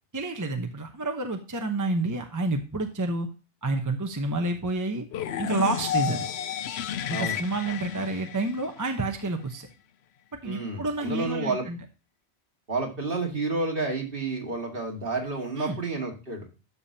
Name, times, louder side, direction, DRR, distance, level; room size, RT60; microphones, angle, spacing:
voice 1, 0.1-3.3 3.6-5.1 5.4-6.3 7.1-9.7 10.4-11.8 15.6-15.8, right 2 dB, 20° right, 4 dB, 0.8 m, -29 dB
sound 1, 5.1-9.1, left 8 dB, 75° left, 0.8 m, -32 dB
voice 2, 10.4-11.7 12.7-16.5, right 3 dB, 55° right, 0 dB, 2.3 m, -30 dB
12.5 x 5.1 x 2.8 m, 0.32 s
omnidirectional pair, 1.1 m